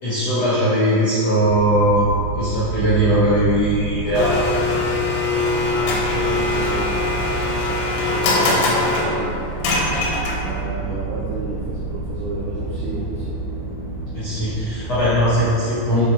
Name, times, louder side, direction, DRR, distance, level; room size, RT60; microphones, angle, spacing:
voice 1, 0.0-2.0 2.4-4.5 10.7-10.9 14.1-16.1, equal, 60° left, -12 dB, 1.7 m, -19 dB
sound 1, 1.4-15.4, right 3 dB, 70° right, 2.8 m, -30 dB
Domestic sounds home sounds, 4.1-10.6, left 3 dB, 80° left, 3.3 m, -22 dB
voice 2, 5.7-7.4 7.7-9.8 10.4-13.4, right 2 dB, 85° right, -5 dB, 2.3 m, -31 dB
10.5 x 4.5 x 3.3 m, 2.6 s
omnidirectional pair, 5.8 m